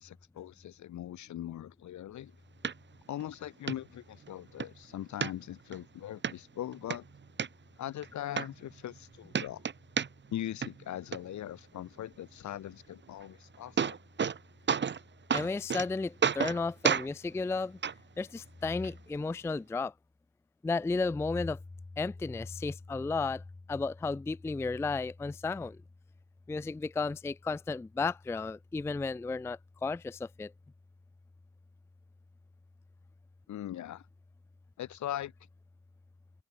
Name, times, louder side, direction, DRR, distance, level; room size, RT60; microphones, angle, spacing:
voice 1, 0.0-2.3 3.1-7.0 7.8-9.6 10.3-14.0 33.5-34.0 34.8-35.3, left 12 dB, 70° left, 2.0 m, -40 dB
sound 1, 2.6-2.7 3.2-3.3 3.7-3.8 4.2-4.7 5.2-5.8 6.2-6.3 6.7-7.5 8.0-8.1 8.4-9.0 9.3-10.4 10.6-11.2 13.2-13.3 13.5-14.4 14.7-15.0 15.3-15.9 16.2-16.6 16.8-17.1 17.8-17.9 18.8-18.9, right 6 dB, 35° right, 1.4 m, -30 dB
voice 2, 15.3-17.8 18.2-19.9 20.6-21.6 22.0-23.4 23.7-25.8 26.5-30.5, left 3 dB, 10° left, 0.4 m, -33 dB
open air
cardioid pair, 90°, 30 cm